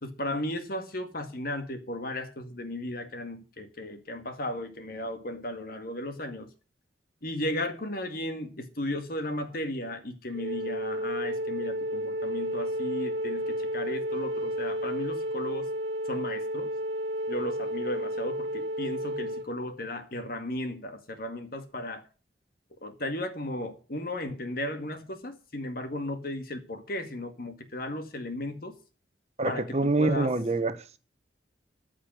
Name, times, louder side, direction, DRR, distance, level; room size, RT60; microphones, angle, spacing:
voice 1, 0.0-6.5 7.2-15.7 16.1-16.8 17.3-22.0 22.8-28.8 29.4-30.3, left 1 dB, 55° left, 2.0 m, -35 dB
Wind instrument woodwind instrument, 10.3-19.5, equal, 90° right, 1.6 m, -32 dB
voice 2, 29.4-31.0, right 3 dB, 40° right, 1.0 m, -26 dB
14.0 x 5.1 x 9.3 m
head